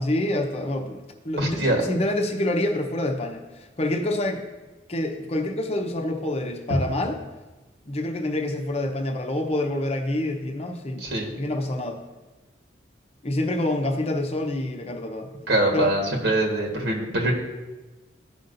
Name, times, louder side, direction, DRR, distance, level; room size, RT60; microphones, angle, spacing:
voice 1, 0.0-4.4 4.9-7.2 7.9-11.0 11.3-12.0 13.2-15.3 15.7-15.9, left 1 dB, 35° left, 3 dB, 0.8 m, -27 dB
voice 2, 1.4-1.8 11.0-11.3 15.5-17.3, right 1 dB, 65° right, 0 dB, 1.5 m, -23 dB
15.0 x 5.6 x 2.6 m, 1.2 s
head